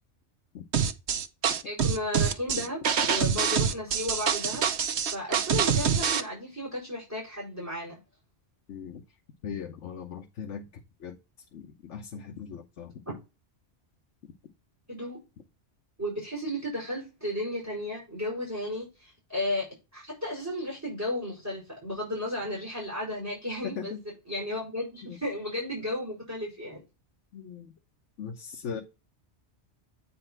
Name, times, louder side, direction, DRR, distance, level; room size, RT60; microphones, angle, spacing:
voice 1, 0.5-0.9 2.5-2.7 8.7-9.0 9.4-10.7 11.0-11.2 11.5-13.0 23.6-24.0 25.1-25.2 27.3-27.7 28.2-28.8, left 7 dB, 80° left, 1.1 m, -39 dB
sound 1, 0.7-6.2, right 7 dB, 70° right, 1.0 m, -25 dB
voice 2, 1.6-4.6 5.1-8.0 13.1-13.2 14.9-15.2 16.0-24.0 24.3-26.8, left 1 dB, 15° right, 4.4 m, -34 dB
8.9 x 4.2 x 4.3 m
omnidirectional pair, 1.2 m